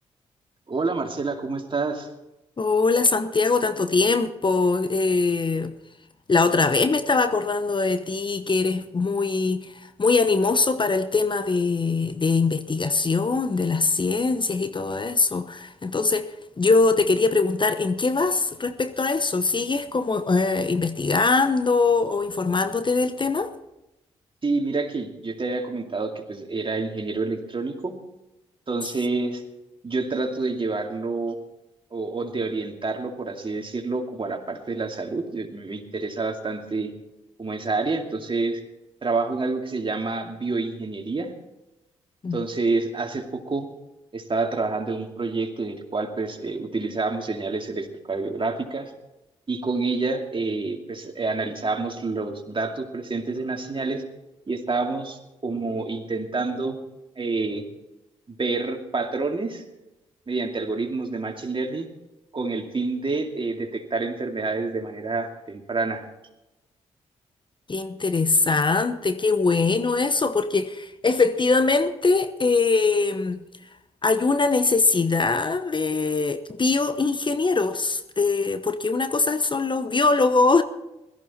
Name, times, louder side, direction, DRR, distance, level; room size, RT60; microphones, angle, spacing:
voice 1, 0.7-2.1 24.4-27.9 28.7-29.4 29.8-31.4 31.9-36.9 37.4-38.6 39.0-41.3 42.3-43.7 44.1-48.9 49.5-54.0 54.5-56.8 57.2-57.6 58.4-59.6 60.3-61.9 62.3-66.1, right 3 dB, 40° right, 2.5 m, -28 dB
voice 2, 2.6-5.7 6.3-23.5 42.2-42.4 67.7-73.4 74.0-80.6, left 3 dB, 35° left, 1.0 m, -22 dB
17.0 x 14.0 x 4.3 m
hypercardioid pair, 40°, 14 cm